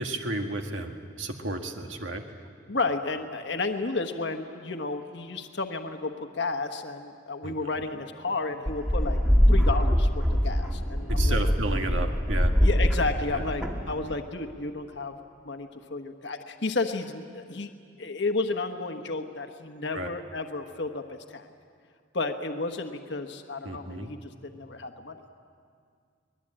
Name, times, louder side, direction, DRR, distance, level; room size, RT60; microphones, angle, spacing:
voice 1, 0.0-2.2 7.4-7.5 11.1-12.5 13.3-13.4 19.9-20.1 23.6-24.1, right 2 dB, 80° right, 4 dB, 1.9 m, -32 dB
voice 2, 2.7-9.2 9.5-11.4 12.6-15.1 15.4-17.7 18.0-21.5 22.1-25.2, left 3 dB, 60° left, 6 dB, 1.2 m, -32 dB
sound 1, 8.7-14.1, equal, 5° right, 1.6 m, -23 dB
24.0 x 20.0 x 8.8 m, 2.2 s
head